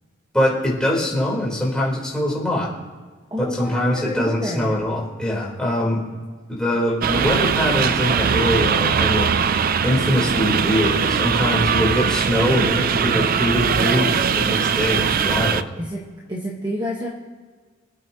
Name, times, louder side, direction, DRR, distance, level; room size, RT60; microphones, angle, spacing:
voice 1, 0.3-2.7 3.4-6.0 6.5-9.3 9.8-15.6, left 1 dB, 5° left, -5 dB, 4.0 m, -23 dB
voice 2, 3.3-4.9 15.8-16.0 16.3-17.1, equal, 20° right, -3 dB, 1.4 m, -28 dB
sound 1, 7.0-15.6, right 6 dB, 40° right, 0.4 m, -20 dB
27.0 x 9.1 x 3.0 m, 1.5 s
head